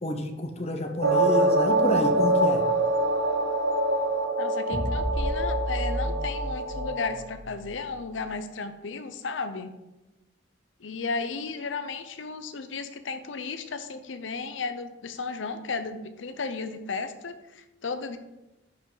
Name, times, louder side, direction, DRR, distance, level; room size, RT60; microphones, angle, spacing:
voice 1, 0.0-2.7, left 1 dB, 35° left, 6 dB, 0.8 m, -29 dB
sound 1, 1.0-7.2, right 2 dB, 65° right, 0.7 m, -25 dB
voice 2, 4.4-9.7 10.8-18.2, left 4 dB, 75° left, 10 dB, 0.7 m, -34 dB
sound 2, 4.7-8.1, equal, 15° right, 1.0 m, -32 dB
10.5 x 5.2 x 3.9 m, 0.99 s
head